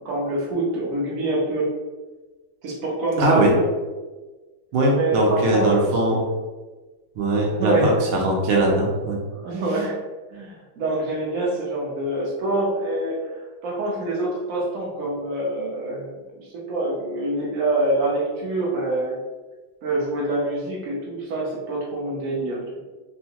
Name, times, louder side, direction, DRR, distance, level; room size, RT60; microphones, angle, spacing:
voice 1, 0.0-1.6 2.6-3.6 4.9-6.2 7.5-8.3 9.3-10.0 10.3-13.3 13.6-19.2 19.8-22.8, right 2 dB, 60° right, -4 dB, 0.9 m, -26 dB
voice 2, 3.2-3.6 4.7-6.2 7.2-9.2, right 1 dB, 75° right, -1 dB, 1.5 m, -20 dB
3.7 x 2.2 x 2.8 m, 1.3 s
omnidirectional pair, 2.4 m